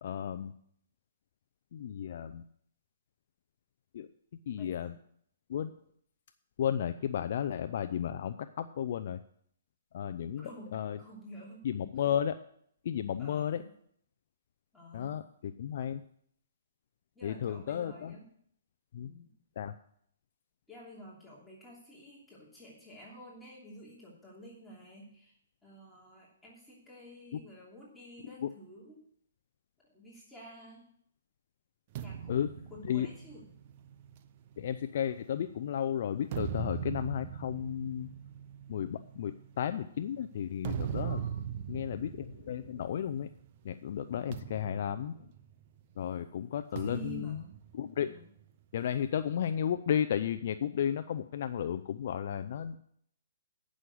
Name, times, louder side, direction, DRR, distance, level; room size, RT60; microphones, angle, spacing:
voice 1, 0.0-0.5 1.7-2.4 3.9-4.1 4.5-4.9 5.5-5.7 6.6-9.2 9.9-11.0 11.6-12.4 12.8-13.6 14.9-16.0 17.2-18.2 18.9-19.1 19.6-19.7 27.3-27.4 28.4-28.5 32.3-32.5 32.8-33.1 34.6-38.1 38.7-41.2 41.7-43.3 43.6-45.3 46.0-47.4 47.7-48.1 48.7-52.8, left 9 dB, 55° left, 10 dB, 0.5 m, -33 dB
voice 2, 4.6-5.0 10.4-11.7 13.2-13.7 14.7-15.2 17.1-18.3 19.0-19.3 20.7-25.3 25.6-29.0 29.9-30.9 32.0-33.5 41.0-41.5 46.8-47.5 48.0-48.3, right 1 dB, 5° left, -6 dB, 2.9 m, -50 dB
sound 1, 31.9-35.5 36.1-43.5 43.7-44.0 44.3-45.9 46.8-48.5, right 9 dB, 40° right, 0.6 m, -41 dB
9.5 x 6.3 x 7.8 m, 0.67 s
hypercardioid pair, 150°, 0 cm